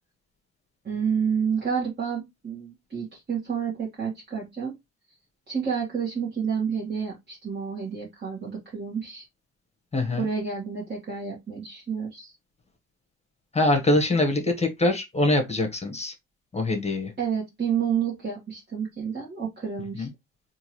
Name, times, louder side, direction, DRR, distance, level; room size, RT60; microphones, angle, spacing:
voice 1, 0.8-4.8 5.5-9.3 10.2-12.3 17.2-20.1, right 7 dB, 35° right, 1.4 m, -29 dB
voice 2, 9.9-10.3 13.5-16.1 16.5-17.1 20.0-20.1, left 2 dB, 20° left, 1.0 m, -23 dB
3.7 x 2.6 x 3.0 m
cardioid pair, 90°, 30 cm